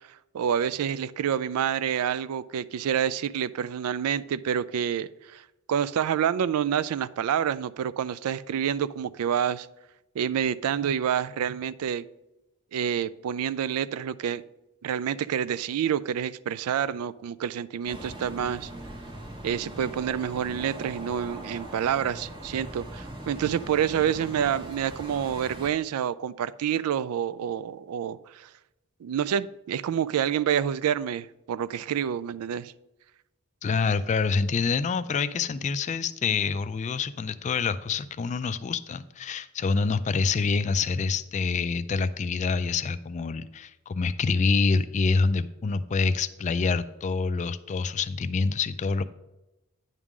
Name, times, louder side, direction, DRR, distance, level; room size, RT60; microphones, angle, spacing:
voice 1, 0.3-5.4 5.7-9.7 10.2-12.1 12.7-14.4 14.8-18.7 19.4-28.5 29.0-32.7, right 8 dB, 80° right, 16 dB, 0.3 m, -28 dB
sound 1, 17.9-25.7, right 1 dB, 20° right, 1.1 m, -41 dB
voice 2, 33.6-49.0, left 4 dB, 35° left, 13 dB, 0.3 m, -26 dB
9.7 x 3.7 x 6.0 m, 0.97 s
head